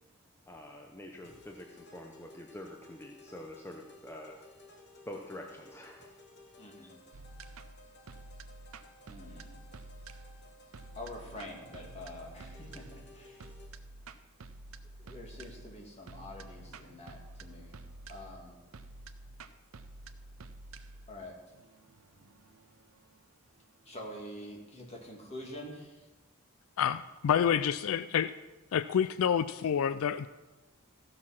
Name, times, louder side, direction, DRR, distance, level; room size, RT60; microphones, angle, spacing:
voice 1, 0.5-4.4 5.1-6.1 6.8-6.9 27.4-27.5, left 1 dB, 10° left, 1 dB, 0.8 m, -46 dB
sound 1, 1.2-13.7, left 2 dB, 50° left, 1.3 m, -57 dB
voice 2, 6.6-6.9 9.1-9.6 11.0-13.4 15.0-17.7 18.1-18.6 21.1-21.3 23.9-26.1, left 1 dB, 30° left, -1 dB, 2.3 m, -46 dB
sound 2, 7.1-24.3, right 2 dB, 75° right, 0.6 m, -50 dB
voice 3, 26.8-28.3 28.7-30.3, left 8 dB, 70° left, 14 dB, 0.3 m, -28 dB
14.5 x 6.4 x 5.8 m, 1.1 s
head